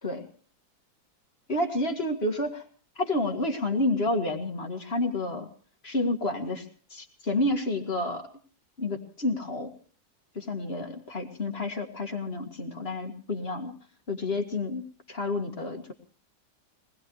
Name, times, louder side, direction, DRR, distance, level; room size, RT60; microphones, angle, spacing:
voice 1, 1.5-2.6 3.0-5.5 5.8-6.6 6.9-8.2 8.8-9.7 10.4-13.7 14.1-15.9, left 2 dB, 35° left, 3 dB, 2.0 m, -29 dB
23.0 x 19.5 x 3.2 m, 0.42 s
omnidirectional pair, 2.0 m